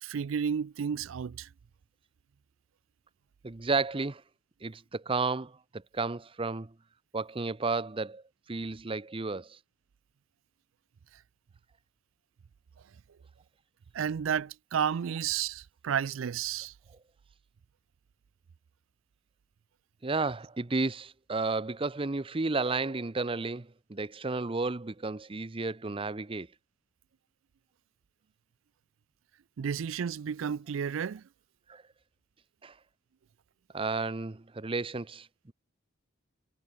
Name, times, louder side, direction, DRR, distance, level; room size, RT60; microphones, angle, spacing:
voice 1, 0.0-1.5 13.9-16.7 29.6-31.2, right 8 dB, 75° right, 0.4 m, -32 dB
voice 2, 3.4-4.2 4.6-6.7 7.1-8.2 8.5-9.6 20.0-26.5 31.7-31.8 32.6-32.7 33.7-35.5, right 3 dB, 25° right, 0.7 m, -32 dB
head